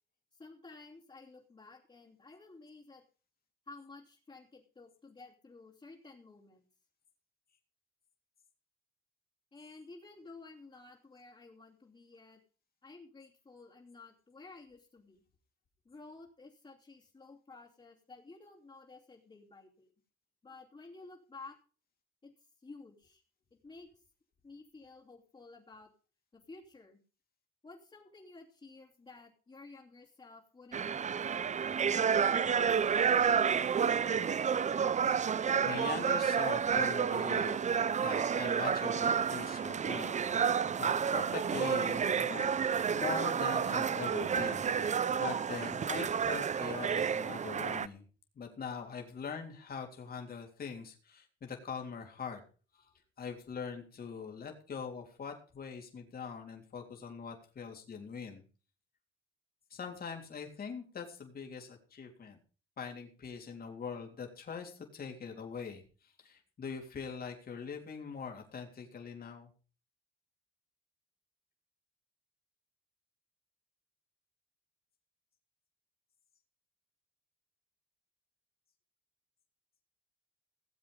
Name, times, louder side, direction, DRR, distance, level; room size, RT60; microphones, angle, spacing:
voice 1, 0.3-3.1 3.7-6.6 9.5-12.4 12.8-15.2 15.8-19.9 20.4-21.6 22.2-23.2 23.6-24.0 24.4-25.9 26.3-27.0 27.6-31.1, left 3 dB, 25° left, -4 dB, 3.1 m, -53 dB
sound 1, 30.7-47.9, right 7 dB, 35° right, 0.6 m, -30 dB
voice 2, 35.6-42.5 42.9-48.0 48.3-52.4 52.7-52.9 53.2-58.4 59.7-62.4 62.8-69.5, left 6 dB, 50° left, 2 dB, 3.5 m, -42 dB
18.0 x 7.8 x 5.4 m, 0.38 s
cardioid pair, 90°, 20 cm